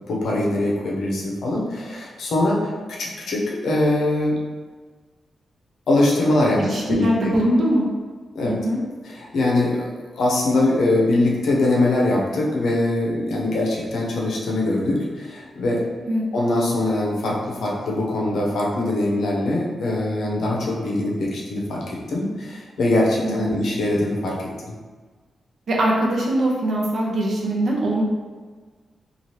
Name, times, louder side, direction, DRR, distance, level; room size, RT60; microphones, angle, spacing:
voice 1, 0.1-4.4 5.9-7.3 8.3-8.6 9.0-9.9 10.1-15.8 16.3-24.4 24.7-24.8, left 2 dB, 75° left, -3 dB, 0.6 m, -22 dB
voice 2, 6.6-7.9 8.4-8.8 16.0-16.2 23.2-23.6 25.7-28.0, right 1 dB, 55° right, -3 dB, 0.6 m, -22 dB
2.8 x 2.4 x 3.2 m, 1.4 s
wide cardioid pair, 175°, 0 cm